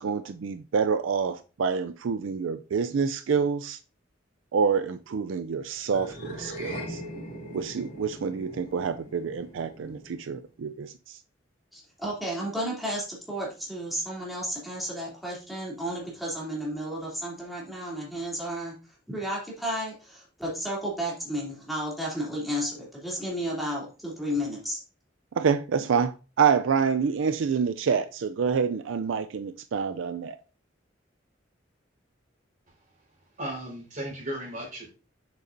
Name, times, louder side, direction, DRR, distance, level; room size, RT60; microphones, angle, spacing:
voice 1, 0.0-3.8 4.5-7.0 7.5-11.2 25.3-30.4, right 6 dB, 85° right, 0.4 m, -27 dB
sound 1, 5.9-10.4, equal, 45° left, 3.0 m, -41 dB
voice 2, 11.7-18.7 19.1-24.8, equal, ahead, 2.9 m, -32 dB
voice 3, 33.4-34.9, right 1 dB, 45° right, 4.5 m, -35 dB
7.9 x 6.8 x 2.6 m
head